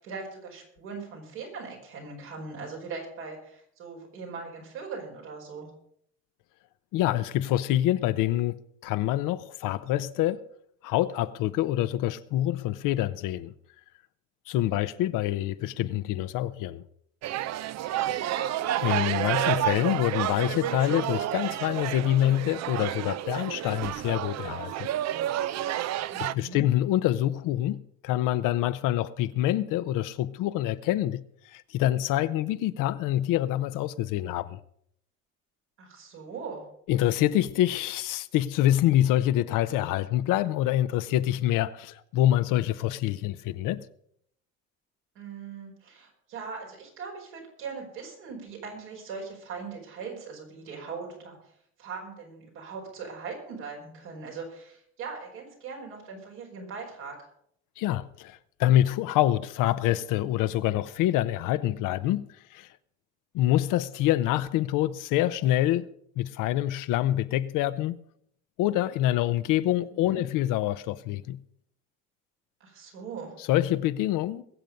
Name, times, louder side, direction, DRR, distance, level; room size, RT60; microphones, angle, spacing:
voice 1, 0.0-5.7 18.0-18.6 26.1-26.6 35.8-36.6 45.1-51.4 51.8-57.2 69.7-70.2 72.6-73.3, right 5 dB, 85° right, 5.1 m, -40 dB
voice 2, 6.9-10.4 10.8-13.5 14.5-16.8 18.8-24.9 26.2-31.2 31.5-34.6 36.9-43.9 57.8-62.3 62.5-62.7 63.3-65.9 66.2-68.0 68.6-71.4 73.5-74.4, left 13 dB, 70° left, 0.8 m, -26 dB
sound 1, 17.2-26.3, right 13 dB, 50° right, 0.6 m, -30 dB
21.5 x 7.7 x 5.3 m
hypercardioid pair, 65°, 33 cm